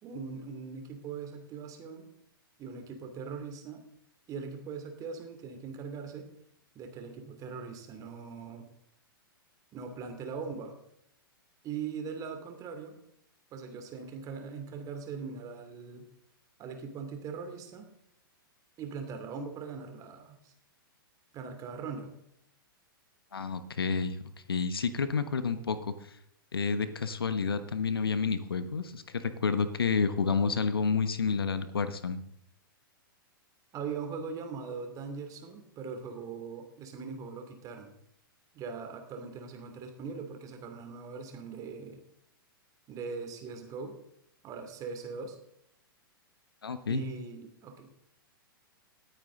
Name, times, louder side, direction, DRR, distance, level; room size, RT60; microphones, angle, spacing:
voice 1, 0.0-2.1 2.6-3.8 4.3-6.3 6.7-8.7 9.7-10.7 11.6-13.0 13.5-16.1 16.6-17.9 18.8-20.5 21.3-22.1 33.7-37.9 38.5-42.0 42.9-44.0 44.4-45.4 46.9-47.9, right 5 dB, 30° right, 5 dB, 2.7 m, -40 dB
voice 2, 23.3-24.2 24.5-25.9 26.5-32.2 46.6-47.0, left 5 dB, 80° left, 11 dB, 1.2 m, -30 dB
19.0 x 9.1 x 3.9 m, 0.74 s
hypercardioid pair, 110°, 12 cm